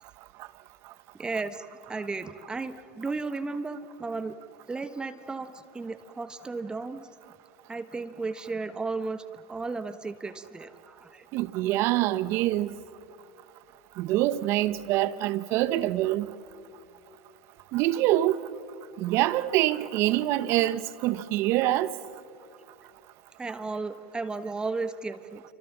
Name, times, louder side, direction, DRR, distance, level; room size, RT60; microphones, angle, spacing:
voice 1, 1.2-4.3 4.7-7.0 7.7-11.3 11.7-11.8 23.4-25.4, right 3 dB, 15° right, 1.4 m, -34 dB
voice 2, 11.3-12.8 14.0-16.3 17.7-18.4 19.0-21.9, right 15 dB, 55° right, 1.2 m, -25 dB
27.5 x 25.5 x 7.4 m
hypercardioid pair, 105°, 5 cm